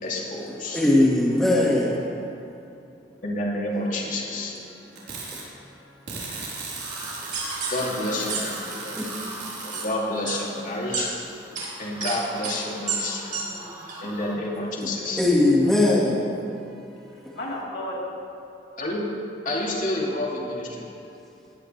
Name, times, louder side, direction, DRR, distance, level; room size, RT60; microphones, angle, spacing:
voice 1, 0.0-0.8 3.2-4.6 7.7-9.0 9.6-11.1 11.8-13.4 14.0-15.2 18.8-19.0 19.4-20.8, left 1 dB, 50° left, -3 dB, 2.8 m, -29 dB
voice 2, 0.7-2.0 5.3-5.4 9.0-9.2 14.8-14.9 15.2-16.3, left 1 dB, 5° left, -5 dB, 2.0 m, -20 dB
voice 3, 1.8-2.2 4.2-4.8 8.9-9.4 11.0-11.4 13.3-13.8 15.0-15.5 17.1-18.0, left 1 dB, 85° left, -5 dB, 3.9 m, -39 dB
sound 1, 4.9-5.4 6.1-9.9, right 4 dB, 65° right, 4.1 m, -37 dB
sound 2, 6.8-14.4, right 1 dB, 20° right, 3.1 m, -41 dB
sound 3, 7.3-7.8 8.3-8.4 8.7-9.0 9.7-9.8 10.3-10.4 10.9-11.0 11.5-11.7 12.0-12.1 12.4-12.6 12.9-13.0 13.3-13.4 13.9-14.0, right 6 dB, 50° right, 4.0 m, -29 dB
18.5 x 16.5 x 3.4 m, 2.6 s
head